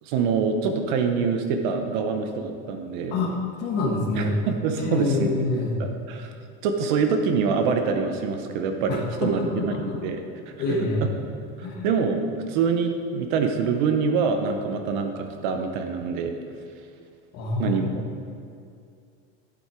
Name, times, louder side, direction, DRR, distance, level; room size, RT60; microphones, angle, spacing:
voice 1, 0.0-3.2 4.1-5.3 5.8-6.3 6.6-10.5 11.0-11.1 11.6-16.3 17.6-17.9, right 5 dB, 50° right, 6 dB, 0.8 m, -25 dB
voice 2, 3.1-4.4 4.8-5.8 8.9-10.0 10.6-11.1 11.6-11.9 17.3-18.0, left 2 dB, 30° left, 0 dB, 1.4 m, -26 dB
11.0 x 7.8 x 4.5 m, 2.4 s
supercardioid pair, 180°, 31 cm